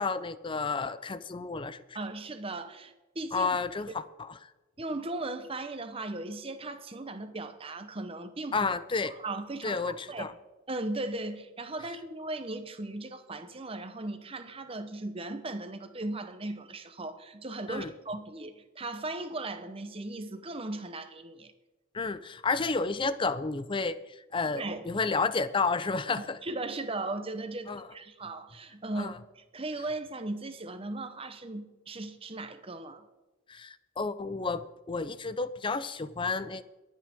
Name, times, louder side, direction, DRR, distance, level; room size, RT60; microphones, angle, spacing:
voice 1, 0.0-1.8 3.3-4.4 8.5-9.1 9.6-10.3 17.7-17.9 21.9-24.0 24.3-26.4 27.7-27.8 29.0-29.1 33.5-36.6, left 4 dB, 25° left, 15 dB, 0.5 m, -31 dB
voice 2, 1.9-3.5 4.8-8.7 9.0-10.3 10.7-21.5 24.6-24.9 26.2-33.1, right 2 dB, 30° right, 9 dB, 0.9 m, -37 dB
22.5 x 8.5 x 3.6 m, 1.1 s
head